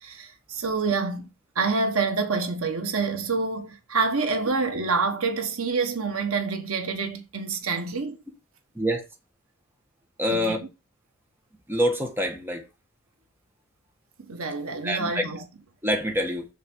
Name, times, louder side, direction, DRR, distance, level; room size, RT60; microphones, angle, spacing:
voice 1, 0.0-8.2 10.3-10.5 14.2-15.4, right 4 dB, 85° right, 1.4 m, -27 dB
voice 2, 10.2-10.6 11.7-12.7 14.8-15.2 15.8-16.5, equal, 10° right, 1.5 m, -25 dB
6.8 x 4.2 x 6.2 m
head